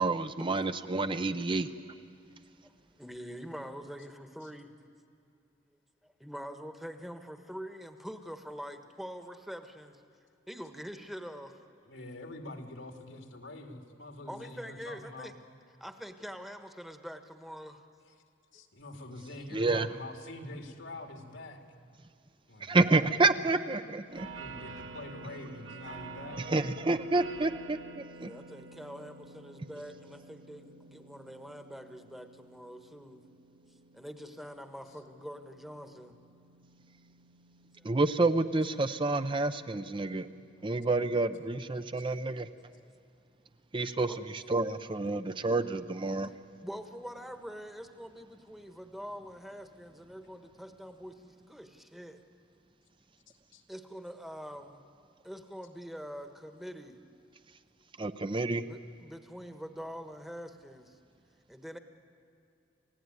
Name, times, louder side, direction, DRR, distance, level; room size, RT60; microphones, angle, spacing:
voice 1, 0.0-1.7 19.5-19.9 22.6-24.3 26.5-28.3 37.8-40.3 40.6-42.5 43.7-46.3 58.0-58.6, right 3 dB, 25° right, 10 dB, 0.6 m, -29 dB
voice 2, 3.0-4.7 6.0-10.0 10.5-11.6 14.3-15.3 15.8-17.8 28.2-33.2 33.9-36.1 37.8-37.9 42.7-42.9 44.1-44.2 46.6-52.2 53.7-54.8 55.2-57.0 58.3-61.0 61.5-61.8, equal, ahead, 7 dB, 1.2 m, -44 dB
voice 3, 11.8-15.4 18.5-21.6 22.5-23.3 24.4-26.4 53.5-53.6, left 2 dB, 80° left, 4 dB, 2.5 m, -45 dB
sound 1, 24.1-41.4, right 3 dB, 70° right, 2.0 m, -50 dB
29.0 x 16.0 x 9.6 m, 2.4 s
head